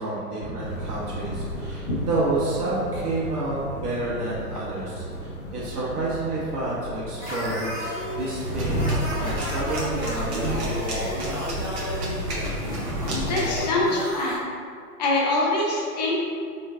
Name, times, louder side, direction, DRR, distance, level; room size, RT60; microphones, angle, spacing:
voice 1, 0.0-11.1, right 2 dB, 75° right, -7 dB, 1.2 m, -29 dB
sound 1, 0.6-9.6, equal, 55° left, 1.0 m, -35 dB
sound 2, 7.2-14.4, left 1 dB, 15° right, 0.6 m, -32 dB
sound 3, 8.5-13.6, right 1 dB, 40° right, 0.8 m, -30 dB
voice 2, 13.1-14.5 15.0-16.2, left 2 dB, 30° left, -4 dB, 0.5 m, -24 dB
3.8 x 3.0 x 2.3 m, 2.2 s
hypercardioid pair, 135°, 47 cm